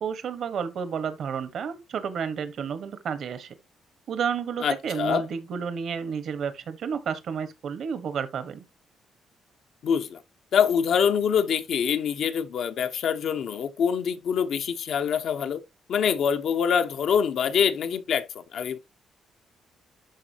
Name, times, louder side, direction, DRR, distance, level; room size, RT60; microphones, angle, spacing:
voice 1, 0.0-3.5 4.1-8.6, right 7 dB, 65° right, 1.4 m, -31 dB
voice 2, 4.6-5.3 9.8-10.2 10.5-15.6 15.9-18.8, left 7 dB, 65° left, 1.0 m, -25 dB
12.0 x 4.2 x 2.9 m
cardioid pair, 90°, 0 cm